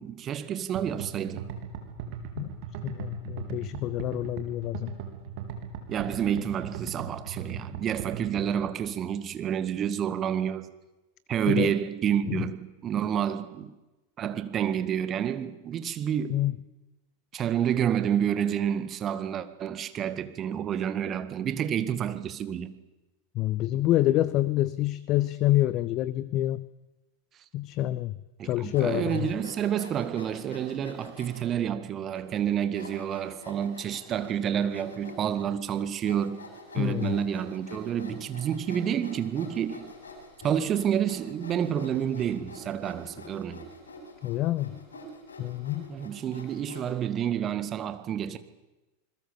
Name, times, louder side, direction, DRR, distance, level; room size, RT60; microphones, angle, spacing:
voice 1, 0.0-1.5 5.9-10.7 11.3-13.7 14.2-16.4 17.3-22.7 28.4-36.4 36.7-39.9 40.4-43.7 45.9-48.4, right 9 dB, 30° right, 1.8 m, -29 dB
sound 1, 0.7-8.7, right 8 dB, 45° right, 3.7 m, -38 dB
voice 2, 2.8-4.9 11.5-11.7 12.3-12.4 16.3-16.6 23.3-26.7 27.5-28.1 28.4-29.3 36.8-37.1 44.2-44.8 45.4-45.9, left 15 dB, 35° left, 0.8 m, -27 dB
Sawing, 28.6-31.5 32.1-32.2 32.7-47.1, left 2 dB, 65° left, 7.8 m, -46 dB
27.5 x 21.0 x 7.3 m
figure-of-eight pair, 90°, 0 cm